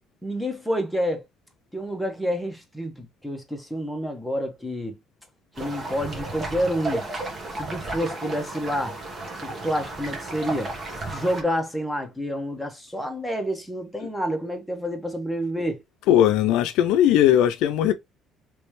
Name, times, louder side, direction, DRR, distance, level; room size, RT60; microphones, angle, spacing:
voice 1, 0.2-1.2 1.7-5.0 5.5-7.1 7.5-9.0 9.4-10.7 11.1-15.8, equal, ahead, 1.0 m, -28 dB
sound 1, 5.5-11.4, right 2 dB, 30° right, 1.3 m, -33 dB
voice 2, 16.1-17.9, left 11 dB, 90° left, 0.5 m, -18 dB
3.3 x 3.2 x 3.1 m
cardioid pair, 125°, 0 cm